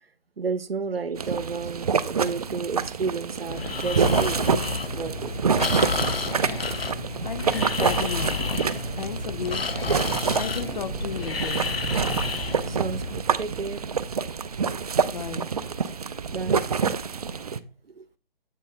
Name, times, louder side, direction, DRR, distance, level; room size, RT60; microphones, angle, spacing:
voice 1, 0.4-4.5 4.9-5.6 12.7-13.8 16.3-16.7 17.8-18.0, right 5 dB, 90° right, 15 dB, 0.7 m, -32 dB
sound 1, 1.2-17.6, right 6 dB, 40° right, 0.4 m, -27 dB
Breathing, 3.5-13.2, left 4 dB, 85° left, 0.7 m, -31 dB
voice 2, 7.2-8.5 8.9-9.7 10.3-11.9 15.1-15.5, left 7 dB, 50° left, 14 dB, 0.6 m, -34 dB
8.0 x 4.2 x 3.6 m, 0.34 s
figure-of-eight pair, 150°, 29 cm